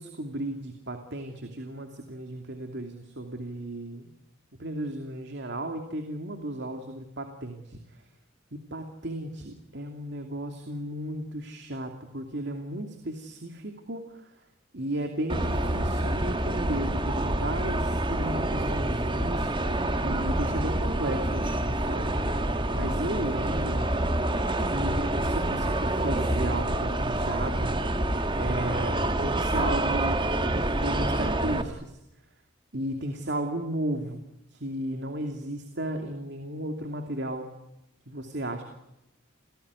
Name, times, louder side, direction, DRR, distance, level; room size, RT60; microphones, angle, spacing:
voice 1, 0.0-4.1 4.6-8.0 8.5-14.4 14.7-19.5 20.0-22.2 22.5-23.9 24.6-27.8 28.3-30.3 30.5-32.0 32.7-34.2 34.5-37.5 38.1-38.6, right 1 dB, 60° right, 5 dB, 2.7 m, -34 dB
sound 1, 15.3-31.6, right 1 dB, 25° right, 1.8 m, -27 dB
29.0 x 18.0 x 9.6 m, 0.88 s
head